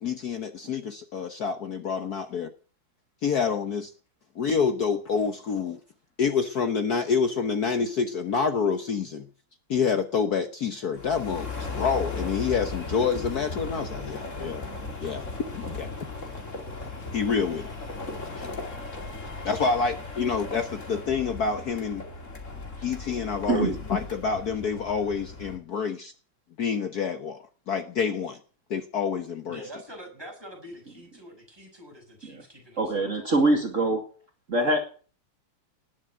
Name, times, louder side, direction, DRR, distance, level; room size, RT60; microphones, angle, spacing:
voice 1, 0.0-2.5 3.2-3.9 4.3-5.8 6.2-9.3 9.7-14.6 15.0-15.2 15.5-15.9 17.1-17.7 18.4-18.5 19.4-22.0 22.8-26.1 26.6-27.4 27.7-28.4 28.7-29.6, left 5 dB, 55° left, 8 dB, 1.5 m, -27 dB
sound 1, 10.9-25.6, left 3 dB, 40° left, 2.7 m, -37 dB
voice 2, 23.5-23.8 32.2-32.4 32.8-34.0 34.5-34.8, right 2 dB, 40° right, 2 dB, 2.5 m, -23 dB
voice 3, 29.5-33.5 34.7-34.8, equal, 10° right, 0 dB, 6.4 m, -45 dB
19.5 x 7.4 x 9.1 m, 0.41 s
omnidirectional pair, 2.1 m